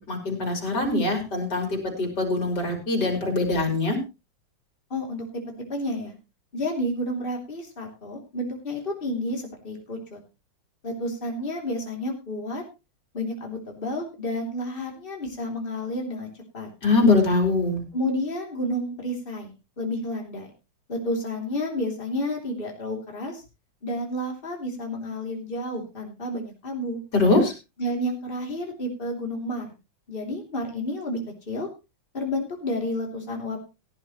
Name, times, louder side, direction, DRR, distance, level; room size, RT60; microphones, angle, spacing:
voice 1, 0.0-4.0 16.8-17.8 27.1-27.5, left 3 dB, 55° left, 3 dB, 5.0 m, -23 dB
voice 2, 4.9-5.2 5.7-6.1 6.5-10.2 10.8-12.6 13.1-16.3 16.5-16.7 17.9-19.5 19.8-20.5 20.9-23.4 23.8-27.0 27.8-29.7 30.1-31.2 31.5-31.7 32.1-33.6, left 1 dB, 25° left, 1 dB, 3.2 m, -30 dB
17.0 x 11.5 x 3.1 m, 0.28 s
omnidirectional pair, 2.2 m